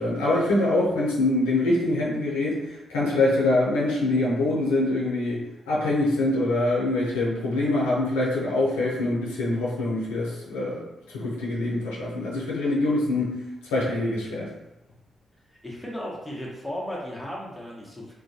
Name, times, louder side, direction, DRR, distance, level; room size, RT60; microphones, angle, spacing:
voice 1, 0.0-5.4 5.7-10.8 11.1-13.3 13.7-14.5, left 2 dB, 90° left, -6 dB, 0.6 m, -24 dB
voice 2, 15.6-18.1, equal, 5° left, -4 dB, 1.0 m, -35 dB
2.4 x 2.1 x 2.7 m, 0.94 s
hypercardioid pair, 40°, 0 cm